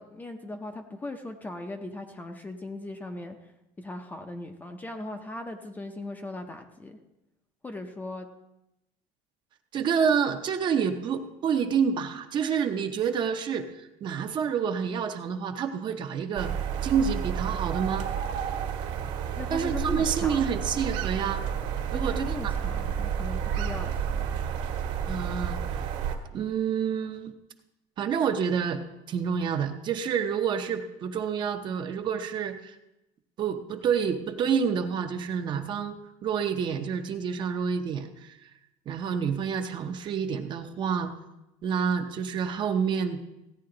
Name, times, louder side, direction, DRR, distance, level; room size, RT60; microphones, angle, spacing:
voice 1, 0.0-3.5 3.8-7.0 7.6-8.3 19.4-20.5 21.9-24.4, left 2 dB, 10° left, 6 dB, 0.6 m, -38 dB
voice 2, 9.7-16.5 16.8-18.1 19.5-21.4 21.9-22.5 25.1-25.8 26.3-27.3 28.0-28.8 29.1-32.8 33.4-38.5 38.9-41.1 41.6-43.2, right 7 dB, 35° right, 6 dB, 0.7 m, -28 dB
sound 1, 16.4-26.2, right 8 dB, 65° right, 1.5 m, -30 dB
16.0 x 9.4 x 3.8 m, 0.92 s
cardioid pair, 165°, 14 cm